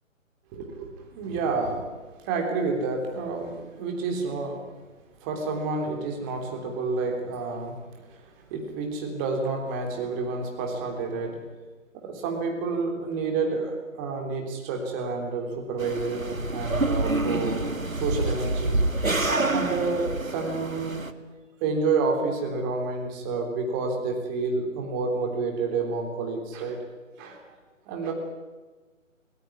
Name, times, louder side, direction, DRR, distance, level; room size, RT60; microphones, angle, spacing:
voice 1, 0.5-1.8 2.2-4.7 5.2-11.3 12.0-17.6 17.9-18.8 19.5-21.0 21.6-26.8 27.2-27.6 27.9-28.1, right 4 dB, 15° right, 2 dB, 3.4 m, -29 dB
sound 1, 15.8-21.1, right 2 dB, 85° right, 2.0 m, -27 dB
20.5 x 20.0 x 9.7 m, 1.3 s
figure-of-eight pair, 145°, 40 cm